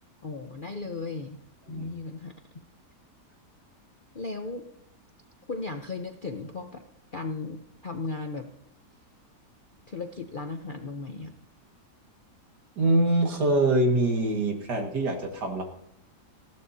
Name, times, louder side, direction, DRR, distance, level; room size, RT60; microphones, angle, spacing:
voice 1, 0.2-1.4 1.7-2.3 4.1-4.7 5.5-6.8 7.1-8.5 9.9-11.3, left 3 dB, 40° left, 5 dB, 0.8 m, -36 dB
voice 2, 12.8-15.6, right 2 dB, 85° right, 2 dB, 2.5 m, -24 dB
19.5 x 15.0 x 2.8 m, 0.75 s
omnidirectional pair, 1.7 m